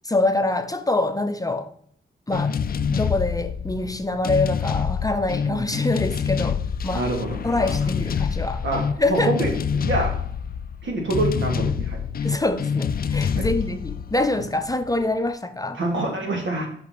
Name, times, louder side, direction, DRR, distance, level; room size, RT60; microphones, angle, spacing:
voice 1, 0.0-1.7 2.3-2.6 2.9-7.0 7.4-8.6 9.0-9.3 12.2-15.8, left 2 dB, 20° left, 0.7 m, -25 dB
sound 1, 2.3-15.0, left 6 dB, 50° left, 0.4 m, -26 dB
voice 2, 5.4-5.8 6.9-7.7 8.6-10.1 10.8-12.0 13.4-13.5 14.4-14.5 15.8-16.7, right 2 dB, 75° right, 2.6 m, -26 dB
6.0 x 5.8 x 6.0 m
cardioid pair, 75°, 20 cm